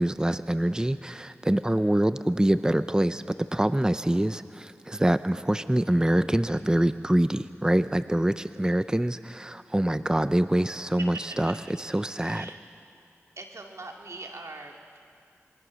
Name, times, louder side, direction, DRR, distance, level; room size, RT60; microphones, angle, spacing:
voice 1, 0.0-11.5 11.9-12.5, right 1 dB, 15° right, 12 dB, 0.6 m, -25 dB
voice 2, 11.0-11.5 12.2-12.6 13.4-15.0, right 2 dB, 80° right, 2 dB, 2.4 m, -41 dB
26.5 x 23.5 x 6.3 m, 2.3 s
cardioid pair, 45°, 5 cm